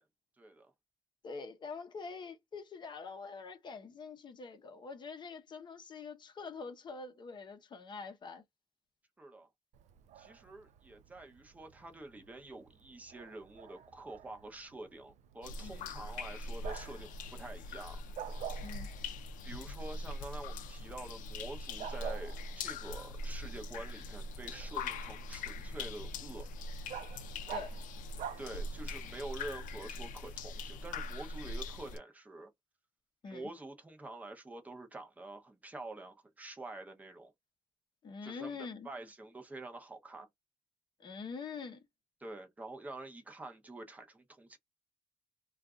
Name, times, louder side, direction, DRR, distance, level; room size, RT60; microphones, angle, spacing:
voice 1, 0.4-0.7 9.2-9.5 10.2-18.0 19.4-26.5 28.4-32.5 33.3-37.3 38.2-40.3 42.2-44.6, right 2 dB, 10° right, 0.7 m, -47 dB
voice 2, 1.2-8.4 15.6-15.7 18.6-18.9 27.5-27.8 33.2-33.5 38.0-38.9 41.0-41.9, left 5 dB, 35° left, 0.7 m, -45 dB
Bark, 9.7-29.1, right 10 dB, 60° right, 0.4 m, -50 dB
sound 1, 15.4-32.0, left 2 dB, 80° left, 0.6 m, -42 dB
2.5 x 2.4 x 3.5 m
cardioid pair, 145°, 13 cm